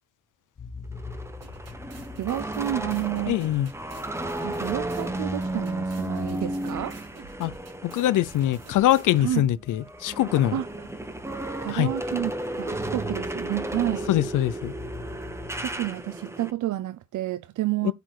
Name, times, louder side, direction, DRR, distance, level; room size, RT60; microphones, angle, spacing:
sound 1, 0.6-16.2, left 4 dB, 35° left, 1.6 m, -45 dB
sound 2, 0.9-9.3 9.7-16.5, right 1 dB, 10° right, 1.1 m, -34 dB
sound 3, 1.4-9.4, right 3 dB, 55° right, 3.4 m, -49 dB
voice 1, 2.2-3.4 4.4-7.0 7.2-7.4 9.2-9.5 10.5-10.9 11.6-14.1 15.5-17.9, right 14 dB, 75° right, 0.6 m, -30 dB
voice 2, 3.3-3.7 7.4-7.5 7.8-10.6 11.7-11.9 14.1-14.7 17.8-17.9, left 13 dB, 85° left, 0.6 m, -23 dB
8.2 x 4.1 x 4.7 m
cardioid pair, 90°, 30 cm